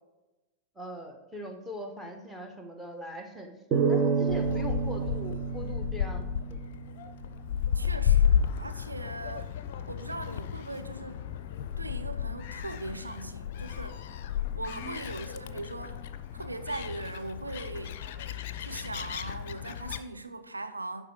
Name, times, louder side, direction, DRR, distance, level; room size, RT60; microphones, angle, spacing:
voice 1, 0.7-6.2 6.5-6.6 14.6-15.0, equal, 5° right, 1.3 m, -41 dB
sound 1, 3.7-7.1, right 6 dB, 35° right, 1.2 m, -29 dB
Gull seagull, 4.3-20.0, left 9 dB, 50° left, 0.5 m, -32 dB
voice 2, 7.7-9.5 9.9-11.3 11.8-14.0 14.6-16.0 16.3-18.0 18.6-21.1, right 2 dB, 80° right, 0.6 m, -39 dB
11.0 x 4.0 x 4.8 m
figure-of-eight pair, 90°, 0 cm